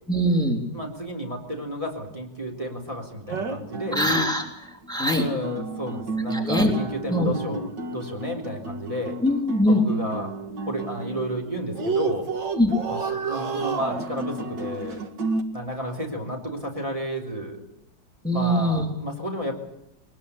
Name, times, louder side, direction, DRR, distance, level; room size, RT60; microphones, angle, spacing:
voice 1, 0.1-0.6 3.9-4.4 4.9-5.2 6.3-6.7 7.1-7.3 9.2-9.8 12.6-12.7 18.2-18.9, equal, ahead, 2 dB, 3.4 m, -22 dB
voice 2, 0.7-4.0 5.1-9.2 9.7-10.3 10.6-12.3 12.9-15.0 15.5-17.6 18.3-19.6, equal, 20° right, 1 dB, 3.7 m, -32 dB
sound 1, 3.3-11.5 11.7-15.4, right 3 dB, 75° right, 2.5 m, -31 dB
22.5 x 21.0 x 8.5 m, 0.81 s
omnidirectional pair, 1.9 m